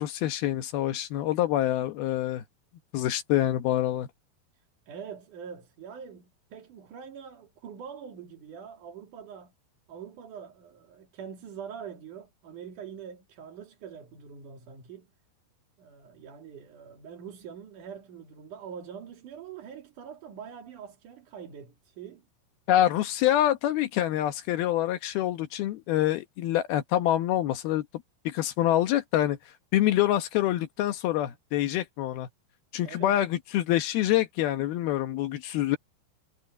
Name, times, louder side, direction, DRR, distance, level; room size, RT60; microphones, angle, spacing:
voice 1, 0.0-2.4 2.9-4.1 22.7-27.9 28.3-29.4 29.7-32.3 32.7-35.8, left 13 dB, 70° left, 2.7 m, -26 dB
voice 2, 4.9-9.5 9.9-15.1 15.8-22.2 32.8-33.2, right 7 dB, 55° right, 3.5 m, -44 dB
omnidirectional pair, 4.9 m